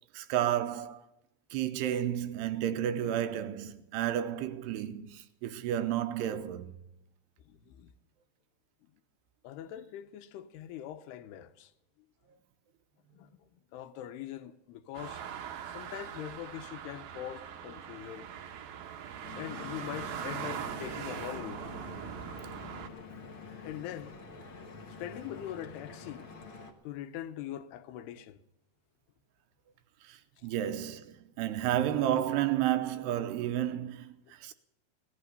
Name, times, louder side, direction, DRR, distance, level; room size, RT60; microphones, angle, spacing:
voice 1, 0.1-1.0 1.5-6.7 30.0-34.5, right 11 dB, 90° right, 2.9 m, -31 dB
voice 2, 7.5-7.9 9.4-11.7 13.1-15.2 15.7-18.3 19.4-21.6 23.6-24.2 25.0-26.3 26.8-28.4 30.4-30.5, left 11 dB, 80° left, 2.9 m, -42 dB
sound 1, 14.9-22.9, right 8 dB, 70° right, 1.8 m, -41 dB
Stream / Boat Water vehicle, 19.2-26.7, left 4 dB, 60° left, 1.3 m, -47 dB
18.0 x 11.5 x 6.7 m
omnidirectional pair, 4.7 m